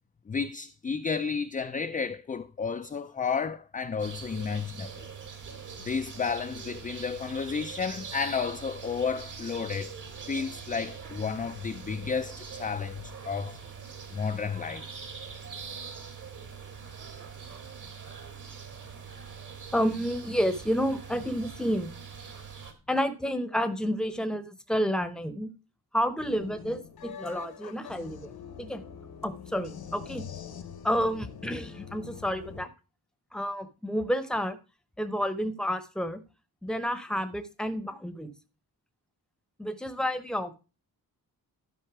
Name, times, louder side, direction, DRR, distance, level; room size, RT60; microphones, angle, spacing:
voice 1, 0.3-5.1 5.8-9.9 10.3-13.6 14.1-14.8, left 5 dB, 25° left, 0.4 m, -32 dB
sound 1, 4.0-22.7, right 6 dB, 55° right, 1.9 m, -43 dB
voice 2, 19.7-21.9 22.9-25.5 25.9-28.8 29.2-30.2 30.8-32.7 33.3-34.6 35.0-36.2 36.6-38.3 39.6-40.5, equal, ahead, 0.8 m, -30 dB
sound 2, 26.2-32.7, left 7 dB, 75° left, 1.1 m, -44 dB
12.0 x 5.5 x 4.7 m
wide cardioid pair, 165°, 37 cm